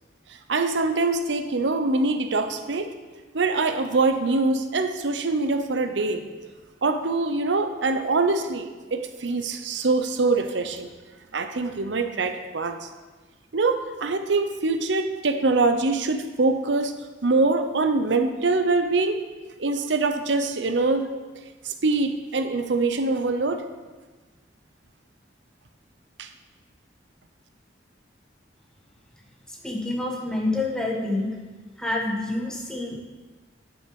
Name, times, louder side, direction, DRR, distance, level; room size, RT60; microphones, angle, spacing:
voice 1, 0.5-2.9 3.3-6.2 6.8-10.9 11.3-12.9 13.5-16.9 17.2-19.2 19.6-21.1 21.6-23.6 26.2-26.3, right 3 dB, 70° right, 7 dB, 0.7 m, -24 dB
voice 2, 29.5-31.4 31.8-33.0, left 2 dB, 5° left, -2 dB, 1.3 m, -27 dB
9.7 x 6.4 x 4.8 m, 1.3 s
head